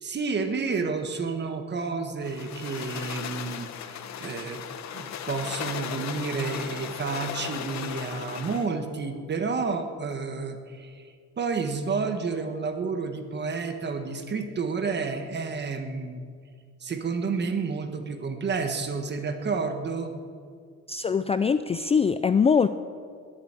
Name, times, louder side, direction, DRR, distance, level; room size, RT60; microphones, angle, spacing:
voice 1, 0.0-4.6 4.9-11.1 11.4-16.2 16.8-20.1, right 4 dB, 35° right, 6 dB, 1.5 m, -30 dB
sound 1, 2.2-8.7, left 8 dB, 65° left, 1.0 m, -36 dB
voice 2, 20.9-22.7, left 6 dB, 20° left, 11 dB, 0.3 m, -22 dB
20.5 x 7.8 x 9.0 m, 2.1 s
cardioid pair, 155°, 30 cm